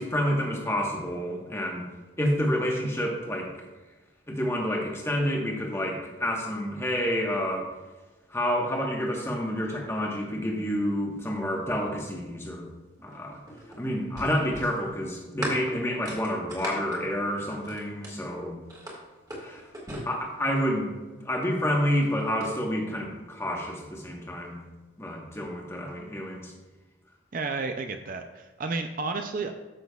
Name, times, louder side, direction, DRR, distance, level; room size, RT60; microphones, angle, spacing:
voice 1, 0.0-1.9 2.2-3.5 4.3-7.7 8.3-12.7 13.0-13.4 13.8-18.6 19.4-19.7 20.0-20.9 21.2-24.6 25.0-26.5, equal, 10° left, -1 dB, 1.2 m, -29 dB
sound 1, 13.0-18.3 18.7-20.8 21.8-22.5, right 1 dB, 20° right, 1.8 m, -38 dB
voice 2, 27.3-29.5, right 3 dB, 40° right, 6 dB, 0.4 m, -31 dB
13.0 x 6.2 x 2.3 m, 1.2 s
head